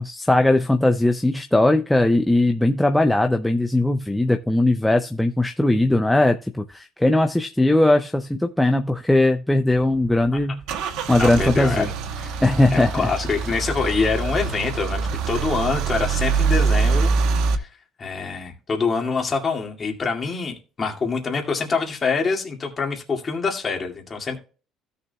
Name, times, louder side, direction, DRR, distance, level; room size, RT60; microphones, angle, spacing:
voice 1, 0.0-10.6 11.1-11.9 12.4-13.1, left 1 dB, 5° left, 0.4 m, -19 dB
Car / Engine starting / Idling, 9.7-17.5, right 5 dB, 75° right, 1.0 m, -24 dB
voice 2, 11.2-11.9 12.2-12.4 12.7-17.7 18.0-24.4, left 4 dB, 25° left, 2.1 m, -25 dB
16.0 x 6.8 x 2.3 m
cardioid pair, 150°, 0 cm